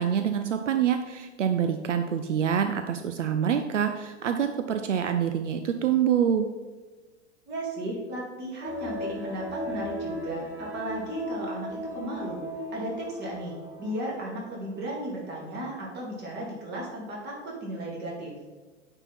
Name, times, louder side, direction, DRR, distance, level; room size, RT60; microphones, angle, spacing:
voice 1, 0.0-6.5, right 8 dB, 75° right, 8 dB, 0.6 m, -26 dB
voice 2, 7.5-12.4 12.7-18.3, right 1 dB, 30° right, -2 dB, 2.4 m, -35 dB
sound 1, 8.6-14.8 15.2-15.3, equal, 5° right, 1.9 m, -37 dB
8.7 x 4.6 x 4.1 m, 1.3 s
figure-of-eight pair, 100°, 36 cm